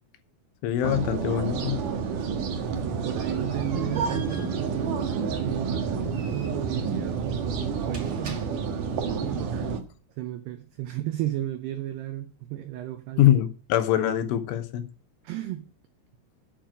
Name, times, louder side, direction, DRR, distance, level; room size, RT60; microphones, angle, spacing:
voice 1, 0.6-1.8 13.2-14.9, left 12 dB, 75° left, 3.3 m, -23 dB
sound 1, 0.8-9.8, right 5 dB, 60° right, 2.3 m, -29 dB
sound 2, 2.4-9.0, right 3 dB, 45° right, 1.8 m, -48 dB
voice 2, 2.6-8.4 9.2-9.7 10.2-13.3 15.2-15.7, right 13 dB, 85° right, 2.3 m, -34 dB
9.1 x 7.2 x 8.9 m
omnidirectional pair, 5.8 m